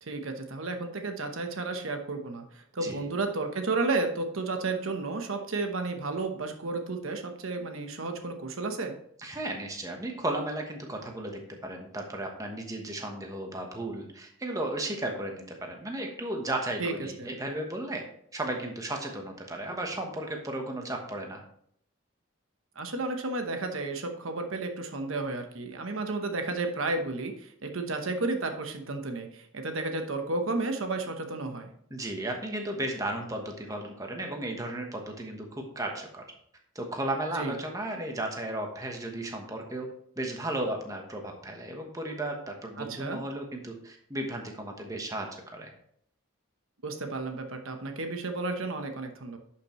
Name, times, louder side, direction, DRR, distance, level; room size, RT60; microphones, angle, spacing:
voice 1, 0.0-8.9 16.8-16.9 17.2-17.3 22.7-31.7 37.3-37.5 42.8-43.2 46.8-49.4, right 3 dB, 75° right, 5 dB, 1.0 m, -32 dB
voice 2, 9.2-18.0 18.3-21.4 31.9-36.2 36.7-39.9 40.2-45.7, right 1 dB, 15° right, 2 dB, 1.1 m, -34 dB
11.0 x 5.8 x 3.1 m, 0.67 s
head